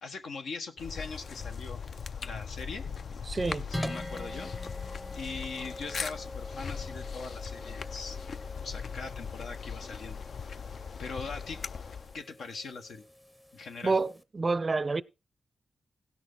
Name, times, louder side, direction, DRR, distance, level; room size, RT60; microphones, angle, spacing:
voice 1, 0.0-1.8 2.2-2.8 3.7-4.5 5.1-10.2 11.0-11.6 12.1-13.0 13.5-14.0, left 4 dB, 90° left, 1.4 m, -41 dB
sound 1, 0.8-12.2, left 6 dB, 65° left, 0.4 m, -39 dB
voice 2, 3.3-3.7 13.8-15.0, right 3 dB, 35° right, 0.4 m, -28 dB
sound 2, 3.7-14.2, left 1 dB, 10° left, 0.7 m, -44 dB
16.5 x 6.1 x 3.9 m
wide cardioid pair, 95°, 0 cm